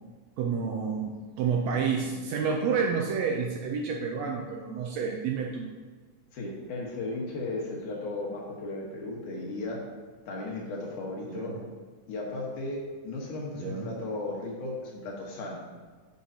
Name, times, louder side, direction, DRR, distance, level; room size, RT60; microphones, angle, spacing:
voice 1, 0.4-5.7 11.3-11.6 13.6-13.9, right 6 dB, 80° right, 1 dB, 1.5 m, -29 dB
voice 2, 6.3-9.8 10.3-11.6 12.1-15.7, left 2 dB, 70° left, -2 dB, 2.8 m, -35 dB
9.4 x 6.4 x 2.8 m, 1.5 s
omnidirectional pair, 3.7 m